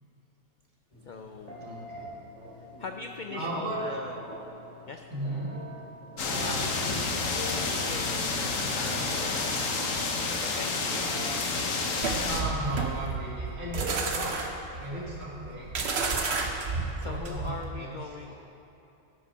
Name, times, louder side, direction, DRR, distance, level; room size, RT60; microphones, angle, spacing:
Telephone, 0.9-12.1, left 1 dB, 30° left, 2.4 m, -45 dB
voice 1, 1.1-1.6 2.6-4.2 4.9-5.0 6.2-9.9 10.4-11.1 11.7-12.2 17.0-18.3, left 4 dB, 90° left, 5 dB, 0.4 m, -42 dB
voice 2, 1.6-2.1 3.3-3.8 5.1-5.5 6.3-6.7 12.2-14.3 14.8-15.8 16.9-18.4, right 1 dB, 75° right, -5 dB, 2.4 m, -35 dB
sound 1, 6.2-12.4, left 3 dB, 75° left, 1.3 m, -29 dB
sound 2, 12.0-17.7, right 4 dB, 55° right, 1.1 m, -31 dB
13.0 x 6.1 x 5.5 m, 2.9 s
omnidirectional pair, 1.4 m